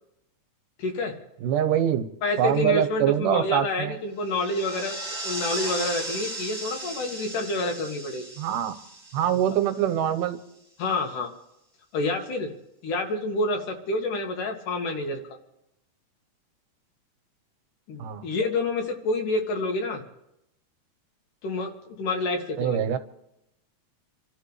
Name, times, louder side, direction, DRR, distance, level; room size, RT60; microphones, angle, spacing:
voice 1, 0.8-1.2 2.2-5.0 5.2-8.3 10.8-11.3 11.9-12.5 12.8-15.2 17.9-20.0 21.4-22.8, left 2 dB, 80° left, 3 dB, 3.3 m, -28 dB
voice 2, 1.4-2.1 2.4-4.0 8.4-8.7 9.1-10.4 18.0-18.3 22.6-23.0, right 10 dB, 80° right, 8 dB, 2.6 m, -24 dB
sound 1, 4.2-10.1, right 1 dB, 15° right, 1.6 m, -36 dB
28.5 x 12.5 x 3.3 m, 0.82 s
omnidirectional pair, 3.7 m